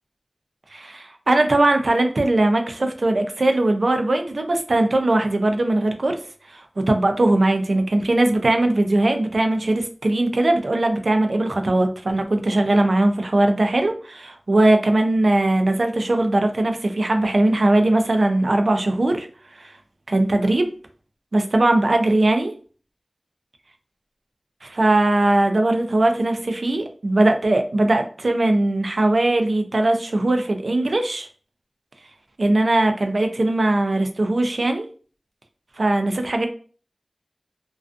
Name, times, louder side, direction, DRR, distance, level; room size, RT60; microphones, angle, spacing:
voice 1, 0.7-6.2 6.5-19.3 19.6-19.7 20.1-20.7 21.3-22.5 24.6-31.3 32.4-34.9 35.8-36.5, right 2 dB, 80° right, 5 dB, 0.3 m, -20 dB
2.4 x 2.3 x 2.4 m, 0.40 s
wide cardioid pair, 60°, 0 cm